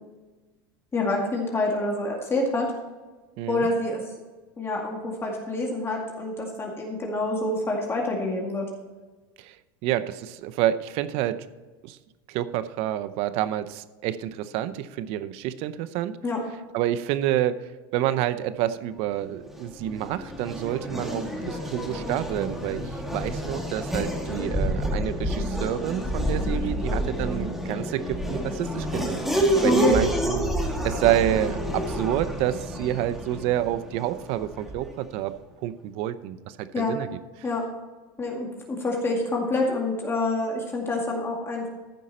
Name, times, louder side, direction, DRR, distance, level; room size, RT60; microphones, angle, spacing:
voice 1, 0.9-2.7 3.5-4.0 4.6-8.7 16.2-16.4 29.6-30.0 36.7-37.0 37.4-37.6 38.2-41.7, left 2 dB, 20° left, -1 dB, 2.2 m, -27 dB
voice 2, 3.4-3.7 9.4-9.6 9.8-11.4 11.8-12.0 12.3-16.2 16.7-35.3 35.6-37.1, right 12 dB, 60° right, 14 dB, 0.7 m, -28 dB
Race car auto racing / Accelerating revving vroom, 19.4-35.0, equal, ahead, 2.0 m, -29 dB
14.5 x 5.6 x 4.3 m, 1.3 s
supercardioid pair, 115°, 12 cm